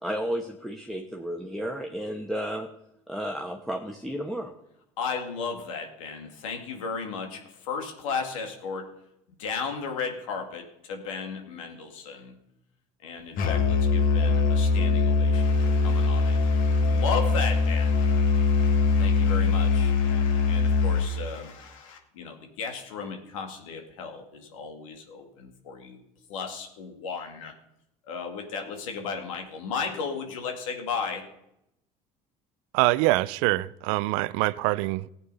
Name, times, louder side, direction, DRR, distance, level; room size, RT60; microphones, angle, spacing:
voice 1, 0.0-2.7 3.1-4.5, equal, ahead, 1.3 m, -32 dB
voice 2, 5.0-8.9 9.4-12.3 13.0-26.0 26.3-27.5 28.1-31.3, left 5 dB, 90° left, 2.2 m, -35 dB
Musical instrument, 13.4-21.2, left 4 dB, 60° left, 1.7 m, -22 dB
voice 3, 32.7-35.1, right 19 dB, 80° right, 0.4 m, -24 dB
15.5 x 8.4 x 5.5 m
supercardioid pair, 80°, 16 cm